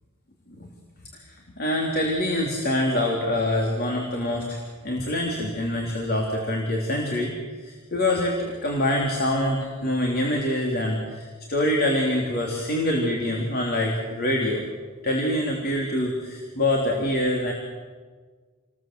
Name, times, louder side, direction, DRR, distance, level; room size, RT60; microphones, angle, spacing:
voice 1, 1.2-7.3 7.6-14.6 15.0-17.5, left 1 dB, 45° left, -1 dB, 3.8 m, -25 dB
29.0 x 21.5 x 7.9 m, 1.5 s
head